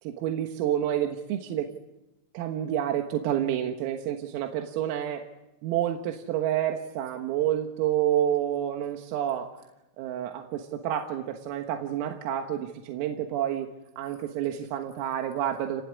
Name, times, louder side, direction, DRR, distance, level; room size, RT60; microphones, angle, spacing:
voice 1, 0.0-1.7 2.3-5.3 5.6-9.5 10.0-13.7 14.0-15.8, right 11 dB, 85° right, 4 dB, 4.1 m, -29 dB
29.5 x 19.5 x 9.8 m, 0.97 s
omnidirectional pair, 5.9 m